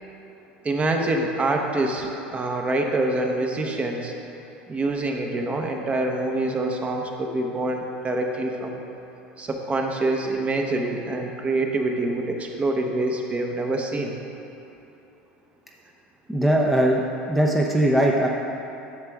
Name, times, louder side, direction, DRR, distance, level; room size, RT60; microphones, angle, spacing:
voice 1, 0.6-4.1 4.7-8.8 9.4-14.1, right 2 dB, 25° right, 2 dB, 1.0 m, -26 dB
voice 2, 16.3-18.3, right 1 dB, ahead, -2 dB, 0.7 m, -20 dB
10.5 x 6.7 x 3.6 m, 2.9 s
hypercardioid pair, 80°, 6 cm